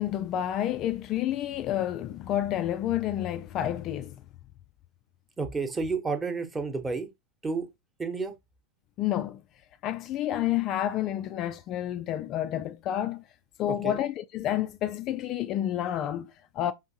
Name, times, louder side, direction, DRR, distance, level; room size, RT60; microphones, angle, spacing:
voice 1, 0.0-4.2 9.0-9.4 9.8-13.2 13.6-16.7, left 12 dB, 35° left, 0.3 m, -29 dB
voice 2, 5.4-7.1 7.4-7.7 8.0-8.3 13.7-14.0, right 4 dB, 15° right, 1.0 m, -31 dB
5.5 x 3.1 x 2.8 m
figure-of-eight pair, 90°, 0 cm